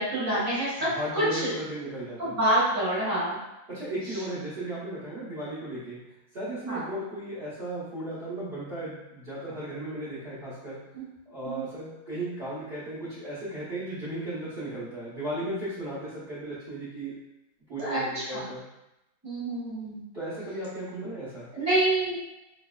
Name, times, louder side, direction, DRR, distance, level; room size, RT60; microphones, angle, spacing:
voice 1, 0.0-1.5 2.2-3.4 6.7-6.8 10.9-11.0 11.4-11.6 17.8-18.4 19.2-20.0 21.5-22.2, right 1 dB, 10° right, -11 dB, 1.2 m, -27 dB
voice 2, 0.8-2.4 3.7-6.0 6.3-10.9 11.3-17.1 17.7-18.6 20.1-21.5, right 1 dB, 45° right, -11 dB, 0.8 m, -35 dB
3.0 x 2.6 x 2.2 m, 0.92 s
omnidirectional pair, 2.0 m